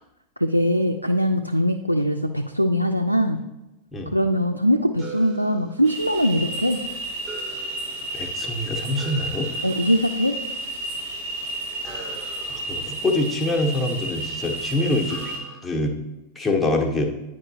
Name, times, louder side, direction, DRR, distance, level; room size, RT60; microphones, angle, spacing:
voice 1, 0.4-3.4 4.1-6.8 9.6-10.4, equal, 90° left, 4 dB, 0.3 m, -21 dB
sound 1, 5.0-6.4 7.2-8.4 9.0-10.2 11.8-13.9 15.1-15.6, right 4 dB, 15° right, 1.1 m, -42 dB
sound 2, 5.8-15.4, right 2 dB, 35° right, 1.7 m, -32 dB
voice 2, 8.1-9.5 12.5-15.3 15.6-15.9 16.4-17.1, left 2 dB, 10° left, 0 dB, 1.0 m, -25 dB
9.7 x 4.7 x 2.8 m, 1.0 s
figure-of-eight pair, 90°, 0 cm